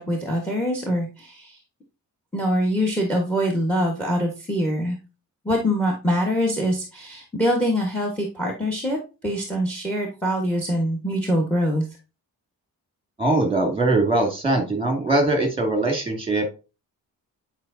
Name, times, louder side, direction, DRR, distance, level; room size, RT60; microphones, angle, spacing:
voice 1, 0.0-1.6 2.3-5.0 5.4-11.9, equal, 5° left, 2 dB, 1.4 m, -24 dB
voice 2, 13.2-16.5, right 2 dB, 15° right, 3 dB, 2.2 m, -21 dB
9.5 x 4.7 x 2.7 m, 0.30 s
wide cardioid pair, 145°, 37 cm